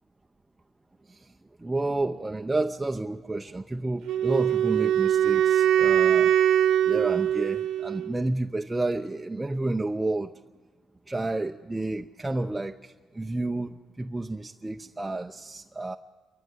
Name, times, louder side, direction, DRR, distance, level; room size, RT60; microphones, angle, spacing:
voice 1, 1.6-6.3 6.9-10.3 11.1-16.0, right 2 dB, 15° right, 4 dB, 0.7 m, -30 dB
Wind instrument woodwind instrument, 4.1-8.2, right 10 dB, 80° right, 1.1 m, -22 dB
29.0 x 14.5 x 8.3 m, 1.3 s
cardioid pair, 90°, 0 cm